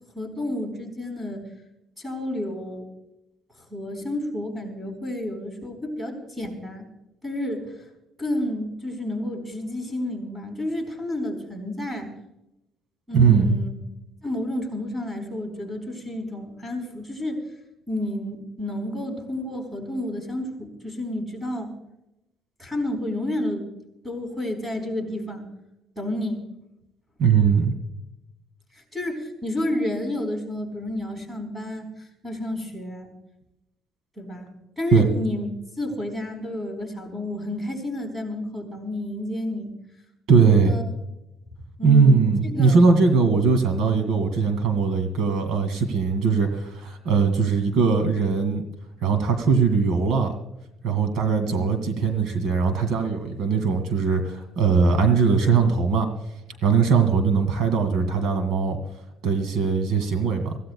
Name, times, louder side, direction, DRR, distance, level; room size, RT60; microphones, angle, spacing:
voice 1, 0.2-1.4 2.0-2.9 3.7-6.9 7.2-7.7 8.2-12.1 13.1-13.7 14.2-17.4 17.9-21.7 22.6-23.7 24.0-25.5 26.0-26.4 28.7-33.1 34.2-34.5 34.8-35.5 35.8-39.7 40.3-40.9 41.8-42.8 51.5-51.7, left 1 dB, 10° right, 3 dB, 4.2 m, -30 dB
voice 2, 13.1-13.5 27.2-27.7 34.9-35.1 40.3-40.8 41.8-48.6 49.0-50.3 50.8-56.1 56.6-58.8 59.2-60.6, right 5 dB, 75° right, 7 dB, 2.2 m, -20 dB
24.5 x 16.0 x 2.3 m, 0.89 s
cardioid pair, 165°, 0 cm